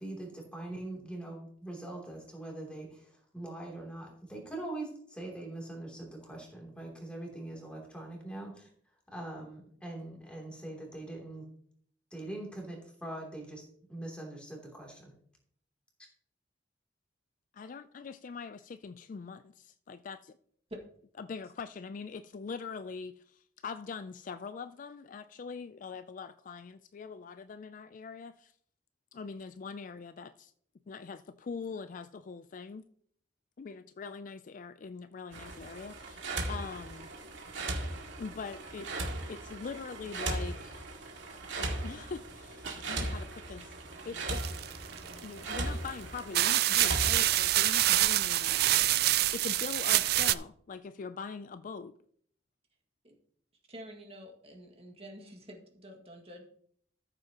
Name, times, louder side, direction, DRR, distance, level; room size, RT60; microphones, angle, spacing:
voice 1, 0.0-8.7 9.1-11.5 12.1-15.1, right 2 dB, 5° left, 2.9 m, -42 dB
voice 2, 17.6-20.2 21.2-28.5 29.1-30.5 30.9-32.9 33.6-37.1 38.2-38.9 39.2-40.7 41.6-43.7 44.0-44.6 45.2-49.0 49.3-51.9, left 5 dB, 45° left, 0.3 m, -43 dB
sound 1, 35.3-47.6, right 2 dB, 85° right, 2.1 m, -38 dB
sound 2, 44.3-45.2 45.9-46.0 46.3-50.3, right 14 dB, 55° right, 0.4 m, -26 dB
voice 3, 53.7-56.5, equal, 35° right, 1.9 m, -49 dB
13.5 x 7.6 x 2.9 m
head